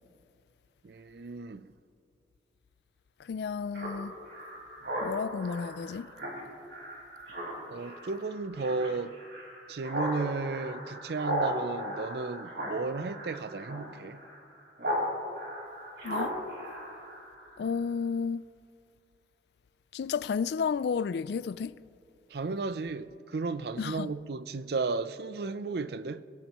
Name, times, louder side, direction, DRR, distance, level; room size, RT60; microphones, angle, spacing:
voice 1, 0.8-1.7 7.7-9.2 9.7-14.2 22.3-26.2, right 4 dB, 60° right, 0.5 m, -34 dB
voice 2, 3.2-4.1 5.0-6.1 16.0-16.4 17.6-18.4 19.9-21.7 23.8-24.1, left 6 dB, 65° left, 0.3 m, -32 dB
Speech synthesizer, 3.7-15.1 15.3-17.6, equal, 80° right, 4.7 m, -37 dB
24.0 x 17.5 x 3.0 m
head